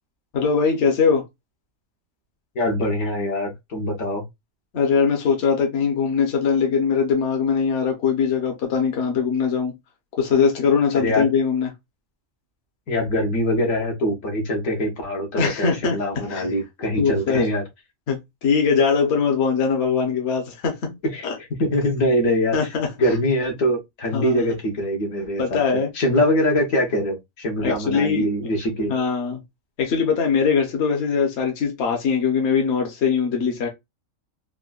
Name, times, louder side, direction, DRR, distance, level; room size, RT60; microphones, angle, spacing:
voice 1, 0.3-1.2 4.7-9.7 10.2-11.7 15.4-16.0 16.3-16.5 17.0-17.4 18.1-20.8 21.2-21.4 22.5-23.1 24.1-24.4 25.4-25.9 27.6-28.3 28.9-29.4 29.8-33.7, left 6 dB, 60° left, 1.0 m, -21 dB
voice 2, 2.5-4.2 10.9-11.3 12.9-17.6 21.1-21.3 21.6-22.6 23.0-25.6 25.9-28.9, equal, 75° left, 1.3 m, -23 dB
3.7 x 2.2 x 2.3 m
omnidirectional pair, 1.4 m